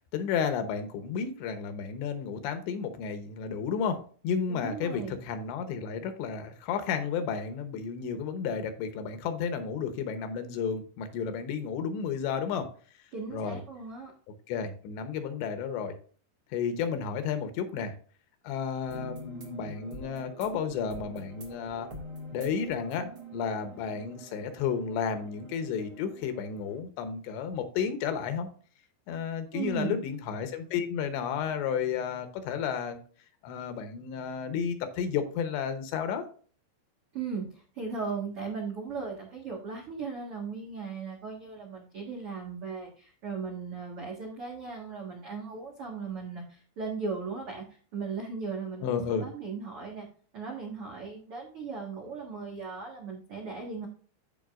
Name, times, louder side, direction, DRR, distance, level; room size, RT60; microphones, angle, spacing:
voice 1, 0.1-12.7 13.3-13.6 14.5-15.9 16.5-17.9 18.4-21.9 22.3-28.5 29.1-33.0 33.4-36.3 48.8-49.3, left 6 dB, 75° left, 7 dB, 3.1 m, -32 dB
voice 2, 4.5-5.2 13.1-14.1 29.5-29.9 37.1-50.1 50.3-53.9, right 5 dB, 80° right, -1 dB, 1.2 m, -37 dB
sound 1, 18.8-26.8, right 1 dB, 55° right, 1.4 m, -46 dB
14.5 x 4.9 x 2.5 m, 0.42 s
omnidirectional pair, 5.3 m